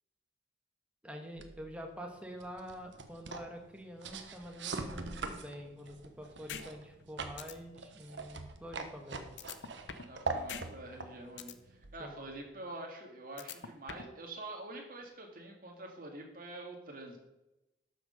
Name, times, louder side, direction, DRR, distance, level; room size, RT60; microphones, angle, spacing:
voice 1, 1.0-9.4 12.0-12.2, equal, 5° right, 3 dB, 1.3 m, -46 dB
sound 1, 1.4-12.5, right 3 dB, 80° right, 1.1 m, -43 dB
sound 2, 6.5-6.6 7.0-7.1 7.4-7.5 9.4-10.1 10.5-10.6 11.0-11.5 13.4-14.1, left 7 dB, 80° left, 0.8 m, -43 dB
voice 2, 10.1-17.2, right 2 dB, 50° right, 2 dB, 2.1 m, -46 dB
12.5 x 6.6 x 5.2 m, 0.97 s
head